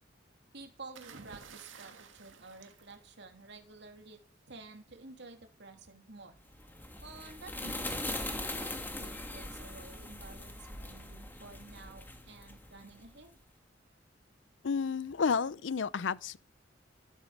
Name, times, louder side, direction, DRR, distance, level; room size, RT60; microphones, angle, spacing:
voice 1, 0.5-4.2 4.5-6.4 7.0-13.4, right 3 dB, 65° right, 3.0 m, -51 dB
sound 1, 0.9-3.7 4.9-5.2, right 5 dB, 85° right, 1.9 m, -52 dB
sound 2, 6.5-13.1, left 1 dB, 10° left, 2.0 m, -41 dB
voice 2, 14.6-16.4, left 5 dB, 70° left, 0.6 m, -31 dB
14.5 x 8.9 x 7.3 m
head